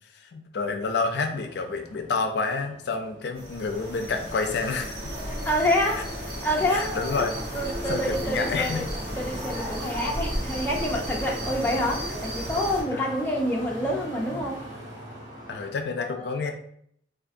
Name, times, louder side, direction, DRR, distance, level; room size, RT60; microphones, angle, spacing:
voice 1, 0.1-5.0 6.7-7.3 7.9-8.9 12.9-13.1 15.5-16.5, left 4 dB, 70° left, 6 dB, 0.4 m, -29 dB
sound 1, 0.8-15.7, equal, 45° right, 1.1 m, -42 dB
sound 2, 3.3-12.8, equal, 70° right, 1.2 m, -33 dB
voice 2, 5.4-6.0 6.4-7.2 7.5-8.8 9.2-14.6 16.0-16.5, left 1 dB, 10° left, -2 dB, 0.5 m, -27 dB
3.6 x 2.5 x 2.5 m, 0.67 s
head